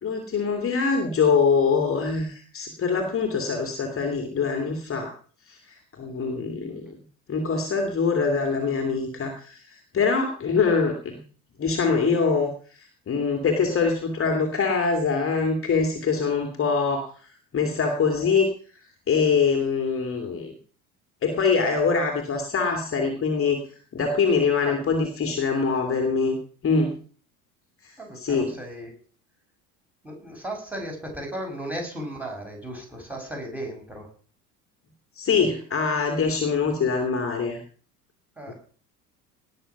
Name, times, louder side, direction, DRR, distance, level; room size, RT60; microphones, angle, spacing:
voice 1, 0.0-5.1 5.5-7.0 7.3-11.2 11.6-18.5 19.1-20.5 21.2-23.6 23.9-26.4 26.6-27.0 27.8-28.5 35.2-37.6 38.5-38.6, left 5 dB, 30° left, 4 dB, 2.5 m, -24 dB
voice 2, 28.0-28.9 30.0-34.1 38.4-38.5, right 1 dB, 5° right, 1 dB, 6.8 m, -35 dB
19.0 x 6.9 x 5.9 m, 0.42 s
figure-of-eight pair, 65°, 44 cm